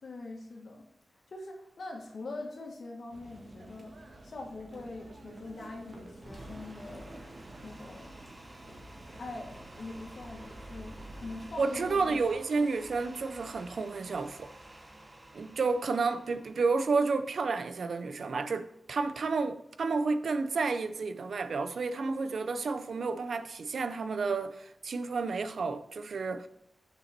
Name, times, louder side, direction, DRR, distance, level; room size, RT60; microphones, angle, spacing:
voice 1, 0.0-0.8 1.3-3.9 4.2-7.2 7.6-8.1 9.2-12.2, left 2 dB, 70° left, 2.0 m, -43 dB
sound 1, 3.1-12.3, right 1 dB, 50° right, 1.9 m, -50 dB
sound 2, 6.2-18.3, right 1 dB, 25° right, 1.0 m, -51 dB
voice 2, 11.6-14.5 15.3-26.5, right 4 dB, 75° right, 0.6 m, -31 dB
6.9 x 5.8 x 4.5 m
wide cardioid pair, 95°, 0 cm